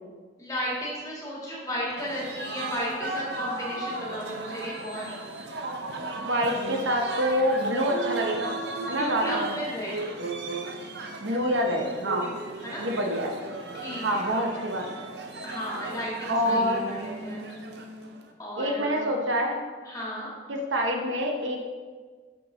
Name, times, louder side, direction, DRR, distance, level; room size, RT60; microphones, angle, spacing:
voice 1, 0.4-5.2 8.8-10.1 12.2-12.9 13.7-14.2 14.5-14.6 15.4-17.5 18.4-19.1 19.8-20.3, equal, 20° left, -5 dB, 1.8 m, -34 dB
sound 1, 2.0-18.3, right 2 dB, 60° right, 0.6 m, -35 dB
voice 2, 6.2-8.6 8.9-9.5 11.2-12.3 12.8-13.3 14.0-14.8 16.3-16.9 18.6-19.6 20.5-21.6, equal, 90° right, 2 dB, 0.9 m, -26 dB
6.1 x 5.9 x 3.8 m, 1.5 s
head